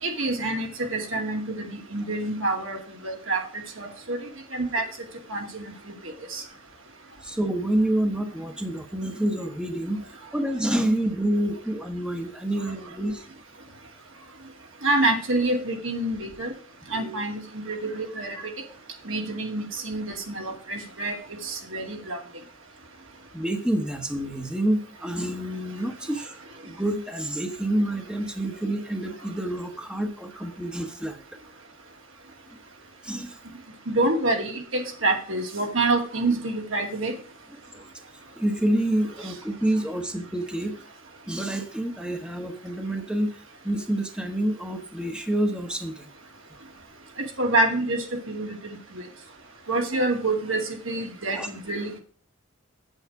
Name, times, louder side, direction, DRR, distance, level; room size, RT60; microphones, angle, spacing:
voice 1, 0.0-3.4 3.8-4.2 4.5-4.8 5.3-5.7 6.0-6.4 14.8-16.5 16.9-18.5 19.1-21.2 21.4-22.2 33.9-37.1 47.2-48.8 49.7-52.0, right 2 dB, 70° right, 3 dB, 2.3 m, -27 dB
voice 2, 7.2-13.2 16.9-17.2 23.3-26.3 26.6-31.2 33.0-33.4 37.7-37.8 38.4-40.8 41.3-46.1 51.3-51.5, right 1 dB, 5° right, 5 dB, 1.0 m, -28 dB
8.3 x 8.0 x 4.7 m, 0.44 s
head